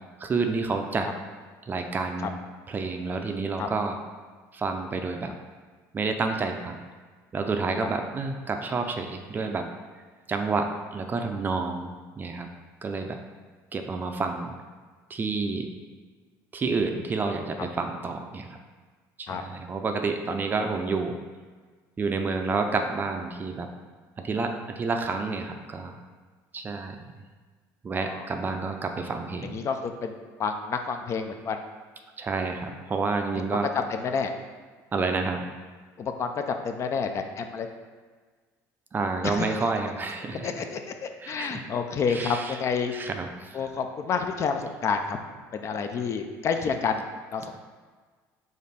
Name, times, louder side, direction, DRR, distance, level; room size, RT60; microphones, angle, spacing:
voice 1, 0.2-1.1 1.7-2.4 2.7-4.0 4.5-5.3 5.9-6.8 7.3-9.6 10.3-11.9 12.2-12.5 12.8-13.2 13.7-14.5 15.1-15.7 16.5-18.5 19.2-21.2 22.0-23.7 24.2-25.9 26.5-27.0 27.8-29.6 32.2-33.7 34.9-35.4 38.9-40.5 41.2-41.5 42.1-42.5 42.9-43.6, right 4 dB, 25° right, 4 dB, 0.4 m, -29 dB
voice 2, 29.4-31.6 33.3-34.3 36.0-37.7 39.2-39.6 40.4-42.9 43.5-45.2 45.5-47.0 47.3-47.5, left 5 dB, 40° left, 6 dB, 0.4 m, -29 dB
5.2 x 2.5 x 4.0 m, 1.4 s
cardioid pair, 115°, 7 cm